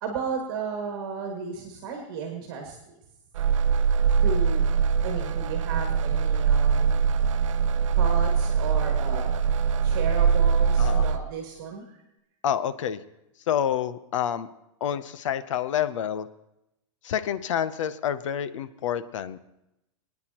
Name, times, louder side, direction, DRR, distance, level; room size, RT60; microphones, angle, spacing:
voice 1, 0.0-2.8 4.2-4.7 5.0-7.1 8.0-9.4 9.8-11.9, right 5 dB, 45° right, 2 dB, 2.1 m, -34 dB
sound 1, 3.3-11.2, right 6 dB, 80° right, 0.7 m, -22 dB
voice 2, 12.4-13.0 13.5-14.5 14.8-16.3 17.0-19.4, left 9 dB, 80° left, 14 dB, 0.8 m, -28 dB
25.0 x 9.6 x 3.0 m, 0.88 s
supercardioid pair, 175°, 16 cm